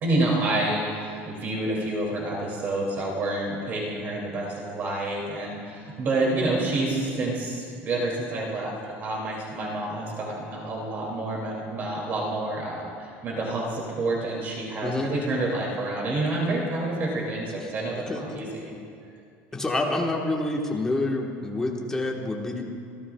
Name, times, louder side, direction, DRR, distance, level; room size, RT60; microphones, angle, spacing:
voice 1, 0.0-18.7, right 2 dB, 35° right, -3 dB, 2.5 m, -28 dB
voice 2, 19.5-22.6, left 2 dB, 10° left, -1 dB, 1.3 m, -27 dB
27.0 x 13.5 x 2.3 m, 2.4 s
cardioid pair, 165°, 6 cm